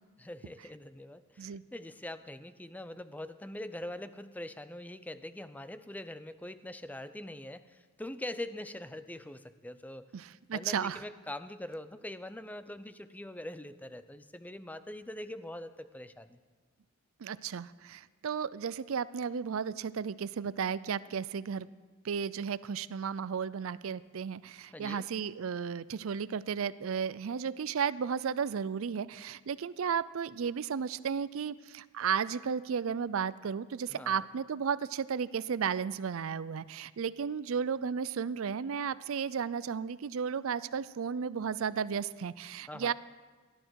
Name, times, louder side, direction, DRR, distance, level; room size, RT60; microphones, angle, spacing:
voice 1, 0.2-10.1 10.5-16.4 24.7-25.1 33.9-34.3 42.7-42.9, left 1 dB, 5° left, 12 dB, 0.4 m, -43 dB
voice 2, 10.1-11.0 17.2-21.7 22.0-42.9, right 6 dB, 65° right, 18 dB, 0.4 m, -34 dB
18.0 x 12.0 x 4.7 m, 1.4 s
head